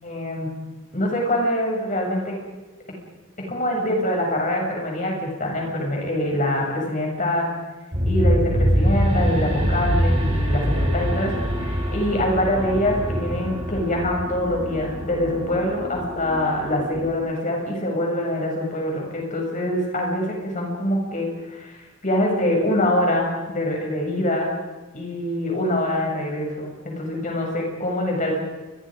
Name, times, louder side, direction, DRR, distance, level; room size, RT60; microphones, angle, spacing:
voice 1, 0.0-0.5 0.9-2.4 3.5-7.5 8.1-24.5 24.9-28.3, left 1 dB, 40° left, 0 dB, 7.2 m, -24 dB
sound 1, 7.9-17.1, equal, 30° right, 6.1 m, -24 dB
28.5 x 22.5 x 5.2 m, 1.2 s
head